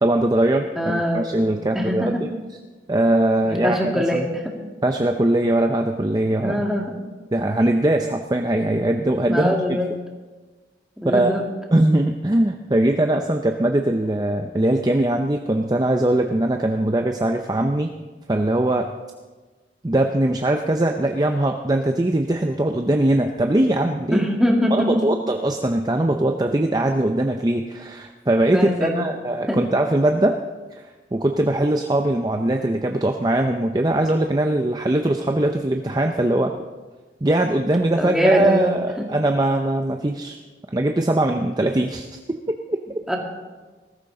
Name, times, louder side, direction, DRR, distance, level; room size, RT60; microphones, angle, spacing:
voice 1, 0.0-2.1 2.9-4.2 4.8-6.6 7.3-9.8 11.0-11.3 11.7-17.9 18.3-18.9 19.8-24.3 24.7-30.4 30.7-30.8 31.1-36.5 37.2-40.4 40.7-42.1 42.7-42.8, right 1 dB, 20° right, 4 dB, 0.5 m, -21 dB
voice 2, 0.8-1.3 1.7-2.2 3.4-4.4 6.4-7.0 9.3-9.9 11.0-11.5 24.1-24.9 28.5-29.0 29.5-29.6 37.9-38.7 39.0-39.1 43.1-43.2, equal, 5° right, -1 dB, 1.9 m, -22 dB
20.0 x 13.0 x 3.8 m, 1.3 s
head